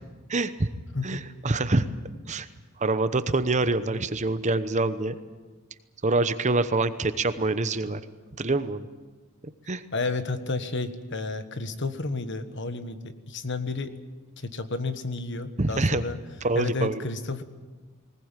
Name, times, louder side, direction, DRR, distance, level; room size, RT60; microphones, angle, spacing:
voice 1, 0.3-0.7 1.0-1.9 2.3-2.5 2.8-5.2 6.0-8.0 8.4-8.9 9.7-9.8 15.6-16.0 16.4-17.0, right 2 dB, 35° right, 12 dB, 0.9 m, -25 dB
voice 2, 9.9-13.9 14.4-16.2 16.5-17.4, left 3 dB, 55° left, 10 dB, 1.4 m, -31 dB
20.0 x 19.0 x 9.1 m, 1.3 s
head